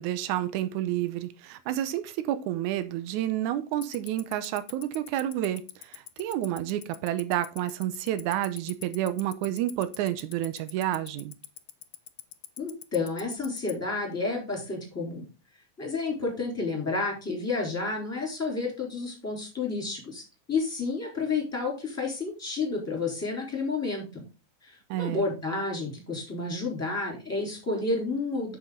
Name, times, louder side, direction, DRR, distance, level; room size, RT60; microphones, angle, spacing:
voice 1, 0.0-5.6 6.2-11.3 24.9-25.2, right 13 dB, 80° right, 2.1 m, -29 dB
Tick-tock, 3.8-13.7, left 17 dB, 80° left, 1.9 m, -40 dB
voice 2, 12.6-15.2 15.8-24.2 24.6-28.6, left 3 dB, 5° left, 3.3 m, -30 dB
7.0 x 6.9 x 3.8 m
omnidirectional pair, 3.4 m